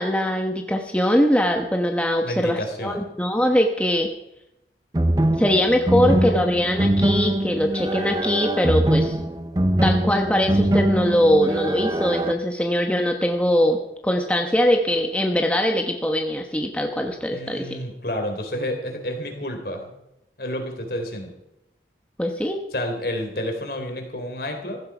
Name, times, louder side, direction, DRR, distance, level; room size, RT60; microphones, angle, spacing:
voice 1, 0.0-4.1 5.4-9.1 9.8-13.8 14.0-17.8 22.2-22.6, equal, 5° left, 3 dB, 1.1 m, -22 dB
voice 2, 2.2-3.1 17.3-19.9 20.4-21.3 22.7-24.8, left 1 dB, 60° left, 4 dB, 3.5 m, -30 dB
sound 1, 4.9-12.3, right 1 dB, 20° right, 0.8 m, -22 dB
15.5 x 15.5 x 5.0 m, 0.85 s
head